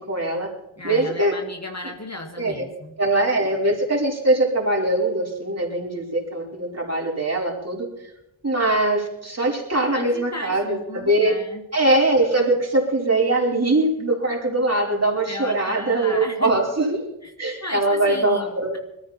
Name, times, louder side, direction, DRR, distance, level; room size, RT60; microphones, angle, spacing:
voice 1, 0.1-0.5 0.8-1.4 2.4-2.7 3.0-7.9 8.4-11.4 11.7-17.0 17.4-18.8, right 2 dB, 30° right, -2 dB, 5.0 m, -22 dB
voice 2, 0.8-2.9 9.9-11.6 15.3-16.5 17.2-17.3 17.6-18.5, left 2 dB, 35° left, 3 dB, 2.1 m, -35 dB
21.0 x 14.0 x 4.5 m, 0.85 s
wide cardioid pair, 55°, 47 cm